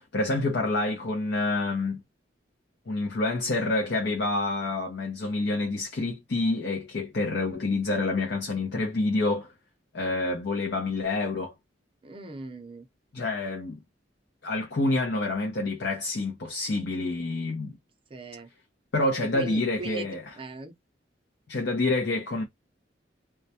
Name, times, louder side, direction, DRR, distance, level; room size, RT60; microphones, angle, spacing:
voice 1, 0.0-2.0 2.9-9.5 9.9-11.5 13.1-13.8 14.4-17.7 18.9-20.2 21.5-22.4, left 2 dB, 70° left, 0.7 m, -27 dB
voice 2, 12.0-12.9 18.1-18.5 19.3-20.1 20.4-20.7, right 2 dB, 30° right, 0.5 m, -39 dB
2.3 x 2.1 x 2.7 m
head